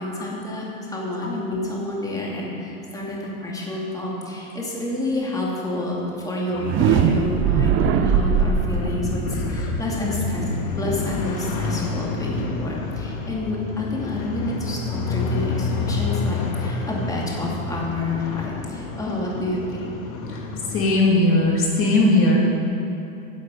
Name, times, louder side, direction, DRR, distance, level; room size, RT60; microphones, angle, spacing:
voice 1, 0.0-10.4 10.8-19.9, left 2 dB, 10° left, -4 dB, 2.4 m, -29 dB
sound 1, 6.5-12.4, right 6 dB, 30° right, 0.6 m, -22 dB
sound 2, 8.8-21.0, left 4 dB, 70° left, 1.6 m, -29 dB
voice 2, 20.7-22.4, left 1 dB, 30° left, -2 dB, 2.6 m, -18 dB
10.0 x 6.5 x 8.4 m, 2.8 s
hypercardioid pair, 125°, 42 cm